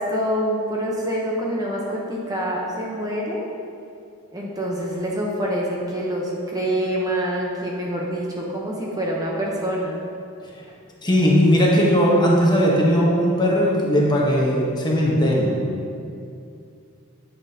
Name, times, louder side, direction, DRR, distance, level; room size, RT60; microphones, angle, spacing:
voice 1, 0.0-3.4 4.3-10.0, equal, 15° right, -3 dB, 0.9 m, -26 dB
voice 2, 11.0-15.6, equal, 20° left, -3 dB, 1.1 m, -18 dB
8.5 x 8.5 x 2.9 m, 2.5 s
head